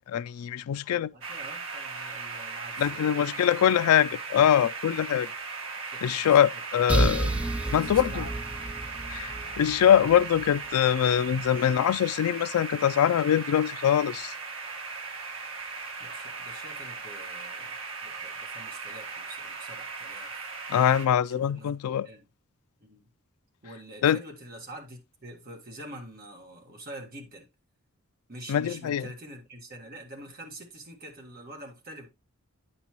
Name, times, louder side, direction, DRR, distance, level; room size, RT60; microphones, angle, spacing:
voice 1, 0.1-1.1 2.8-5.3 6.0-7.3 7.7-8.2 9.1-14.3 20.7-22.1 24.0-24.2 28.5-29.1, left 9 dB, 85° left, 0.3 m, -23 dB
voice 2, 1.1-3.5 5.9-6.4 6.9-7.2 7.6-8.3 16.0-20.3 21.3-21.8 22.0-22.3 22.8-23.1 23.6-27.5 28.3-32.1, right 1 dB, 40° right, 1.7 m, -45 dB
sound 1, 1.2-21.1, right 4 dB, 65° right, 1.5 m, -38 dB
sound 2, 6.9-10.6, right 2 dB, 5° right, 0.3 m, -30 dB
9.2 x 5.5 x 3.0 m
head